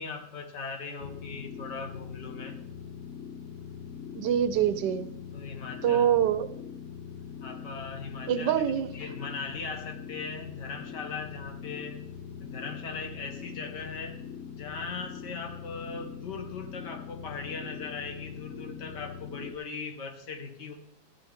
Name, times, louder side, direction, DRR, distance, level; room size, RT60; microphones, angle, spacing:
voice 1, 0.0-2.6 5.3-6.1 7.4-8.6 8.9-12.0 12.4-14.2 14.6-20.7, left 4 dB, 80° left, 2.1 m, -39 dB
sound 1, 1.0-19.5, left 7 dB, 65° left, 0.9 m, -42 dB
voice 2, 4.1-5.1 5.8-6.5 8.3-8.9, right 9 dB, 90° right, 1.4 m, -25 dB
14.5 x 10.0 x 3.6 m
omnidirectional pair, 1.8 m